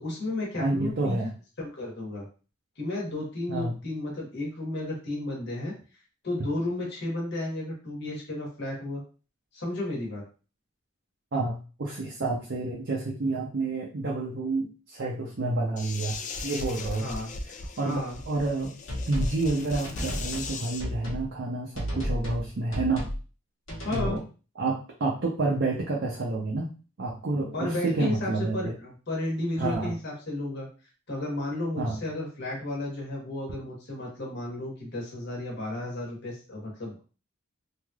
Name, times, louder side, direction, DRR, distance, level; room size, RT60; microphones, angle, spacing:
voice 1, 0.0-1.3 1.6-2.2 2.8-5.7 6.2-9.0 9.5-10.2 17.0-17.3 17.8-18.2 23.8-24.2 27.5-30.7 31.1-37.0, left 2 dB, 55° left, -2 dB, 1.2 m, -33 dB
voice 2, 0.6-1.3 3.5-3.7 11.3-17.1 17.8-18.7 19.1-23.1 23.9-24.2 24.6-26.7 27.0-28.7 29.6-29.9 31.8-32.0, right 2 dB, 55° right, -2 dB, 0.6 m, -29 dB
sound 1, 15.8-20.8, left 3 dB, 35° left, 0.3 m, -37 dB
sound 2, 18.9-19.4 19.8-20.5 20.8-21.2 21.7-22.4 22.7-23.2 23.7-24.2, equal, 70° left, 1.1 m, -33 dB
3.2 x 2.8 x 2.3 m, 0.35 s
head